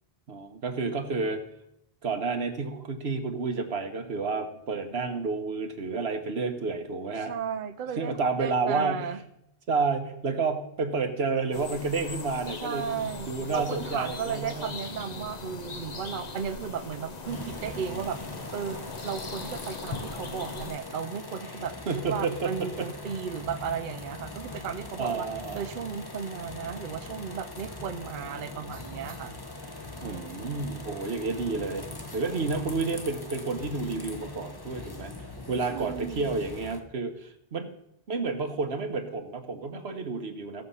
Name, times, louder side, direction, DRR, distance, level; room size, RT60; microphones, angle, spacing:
voice 1, 0.3-1.4 2.0-7.3 8.0-9.1 9.7-14.7 21.9-22.9 25.0-25.6 30.0-31.9 32.1-35.1 35.5-37.7 38.1-40.6, right 4 dB, 85° right, 6 dB, 1.5 m, -30 dB
voice 2, 7.3-9.2 12.6-18.2 18.5-21.8 22.1-25.3 25.5-29.3 30.0-30.7 35.7-36.3, right 7 dB, 55° right, 9 dB, 0.8 m, -35 dB
sound 1, 11.5-20.8, left 3 dB, 45° left, 1.0 m, -40 dB
sound 2, 17.2-36.8, left 2 dB, 25° left, 1.1 m, -41 dB
16.0 x 6.6 x 5.6 m, 0.79 s
omnidirectional pair, 1.0 m